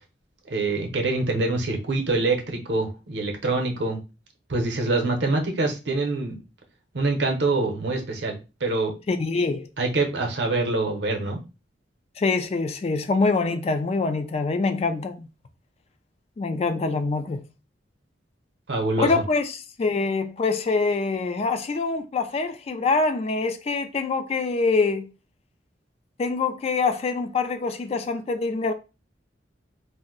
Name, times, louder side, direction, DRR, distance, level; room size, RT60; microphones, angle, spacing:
voice 1, 0.5-4.0 4.5-6.4 6.9-8.9 9.8-11.4 18.7-19.1, right 2 dB, 65° right, 0.7 m, -25 dB
voice 2, 9.1-9.7 12.2-15.3 16.4-17.4 19.0-25.1 26.2-28.7, left 3 dB, 35° left, 0.3 m, -25 dB
2.5 x 2.1 x 3.7 m
head